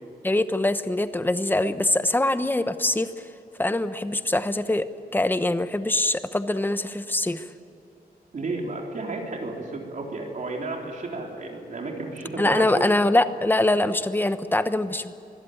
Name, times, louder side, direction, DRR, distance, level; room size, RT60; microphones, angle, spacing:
voice 1, 0.2-3.1 3.6-7.4 12.4-15.1, left 1 dB, 10° left, 11 dB, 1.0 m, -23 dB
voice 2, 8.3-12.9, right 3 dB, 50° right, 0 dB, 3.9 m, -32 dB
24.0 x 16.5 x 9.0 m, 2.8 s
wide cardioid pair, 115°, 17 cm